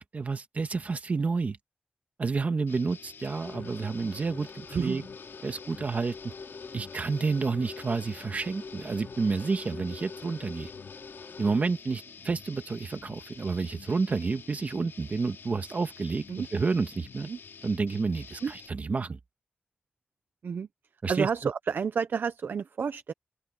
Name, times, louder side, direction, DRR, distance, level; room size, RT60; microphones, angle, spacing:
voice 1, 0.0-1.6 2.2-5.0 5.4-6.3 6.7-10.7 11.4-17.3 17.6-19.2 21.0-21.3, right 4 dB, 40° right, 1.7 m, -30 dB
sound 1, 2.7-18.7, left 6 dB, 75° left, 3.7 m, -49 dB
sound 2, 3.3-11.7, left 4 dB, 50° left, 2.4 m, -45 dB
voice 2, 4.7-5.1 16.3-16.5 17.2-17.4 18.4-18.5 20.4-20.7 21.1-23.1, right 6 dB, 60° right, 0.5 m, -30 dB
open air
wide cardioid pair, 165°, 4 cm